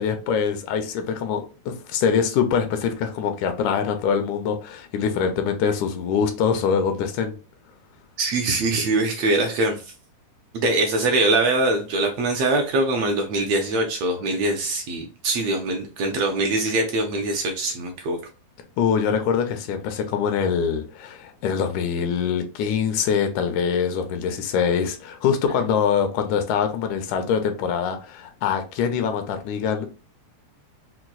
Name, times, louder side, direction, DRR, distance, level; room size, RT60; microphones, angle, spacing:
voice 1, 0.0-7.4 18.8-29.9, left 7 dB, 85° left, 2.0 m, -24 dB
voice 2, 8.2-9.8 10.5-18.2, right 2 dB, 75° right, 1.6 m, -23 dB
5.7 x 2.3 x 2.3 m
omnidirectional pair, 3.4 m